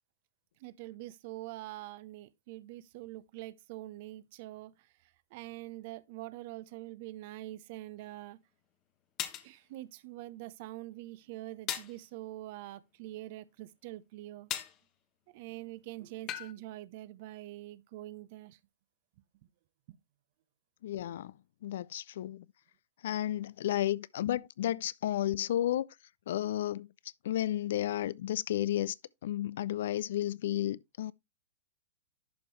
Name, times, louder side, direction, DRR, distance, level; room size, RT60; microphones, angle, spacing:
voice 1, 0.6-8.4 9.4-14.5 15.3-18.6 19.9-20.0, right 16 dB, 45° right, 0.6 m, -45 dB
sound 1, 8.1-8.2 9.2-9.5 11.7-12.0 14.5-14.8 16.3-16.5, left 11 dB, 35° left, 0.9 m, -36 dB
voice 2, 20.8-21.3 21.6-22.5 23.0-25.9 26.3-26.9 27.2-28.9 29.2-31.1, left 12 dB, 60° left, 0.3 m, -32 dB
11.0 x 5.3 x 3.1 m
figure-of-eight pair, 105°, 0 cm